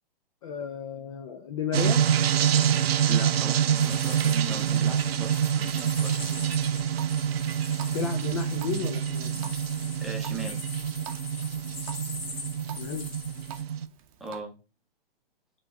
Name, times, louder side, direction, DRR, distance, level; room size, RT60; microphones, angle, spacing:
voice 1, 0.4-2.0 7.9-9.5 12.8-13.1, left 7 dB, 35° left, 6 dB, 0.4 m, -33 dB
sound 1, 1.7-13.9, right 9 dB, 80° right, 0.5 m, -26 dB
voice 2, 3.1-6.4 10.0-10.5 14.2-14.5, right 3 dB, ahead, 0 dB, 0.7 m, -38 dB
sound 2, 3.7-13.6, left 3 dB, 70° left, 2.1 m, -42 dB
Water tap faucet, 6.2-14.4, right 9 dB, 35° right, 0.7 m, -48 dB
4.8 x 3.0 x 3.4 m, 0.33 s
hypercardioid pair, 130°, 30 cm